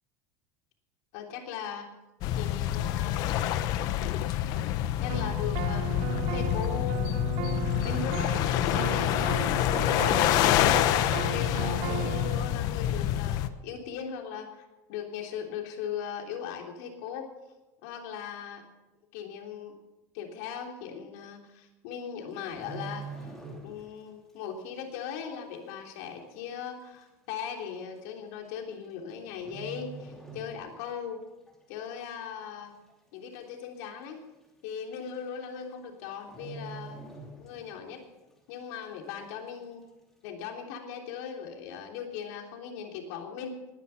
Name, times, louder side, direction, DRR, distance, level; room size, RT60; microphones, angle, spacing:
voice 1, 1.1-1.9 2.3-3.3 4.3-4.5 5.0-7.0 7.8-17.3 17.8-18.6 19.1-19.7 20.1-23.3 23.6-31.2 31.7-32.7 33.1-34.2 34.6-37.0 37.4-38.0 38.5-39.8 40.2-43.6, left 7 dB, 70° left, 2 dB, 3.3 m, -39 dB
sound 1, 2.2-13.5, left 12 dB, 50° left, 0.9 m, -27 dB
sound 2, 5.1-12.5, right 12 dB, 55° right, 0.7 m, -36 dB
sound 3, 22.3-24.0 24.3-24.6 25.1-25.2 26.1-26.2 26.4-26.5 27.4-27.6 28.7-29.1 29.4-31.0 31.3-31.5 32.0-32.5 32.9-33.0 33.2-33.3 33.7-33.8 34.8-34.9 35.1-35.4 35.7-35.8 36.2-37.9 38.2-38.3, right 3 dB, 5° left, 2.8 m, -44 dB
20.0 x 11.0 x 5.8 m, 1.0 s
cardioid pair, 165°, 8 cm